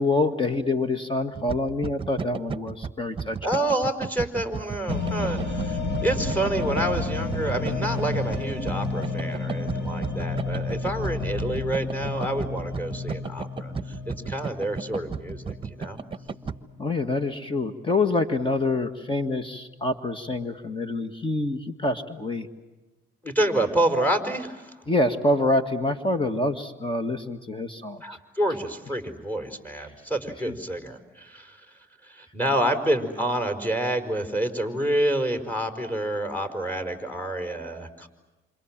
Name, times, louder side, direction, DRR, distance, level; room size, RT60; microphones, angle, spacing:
voice 1, 0.0-3.4 16.8-22.5 24.9-28.0 30.4-30.5, left 2 dB, 25° left, 8 dB, 1.9 m, -26 dB
sound 1, 1.3-16.6, right 5 dB, 25° right, 1.2 m, -34 dB
voice 2, 3.4-16.0 23.2-24.8 28.0-31.6 32.0-38.1, right 1 dB, 10° left, 5 dB, 4.8 m, -28 dB
sound 2, 4.9-17.4, left 3 dB, 60° left, 6.3 m, -31 dB
28.5 x 27.0 x 7.5 m, 1.1 s
cardioid pair, 90°, 20 cm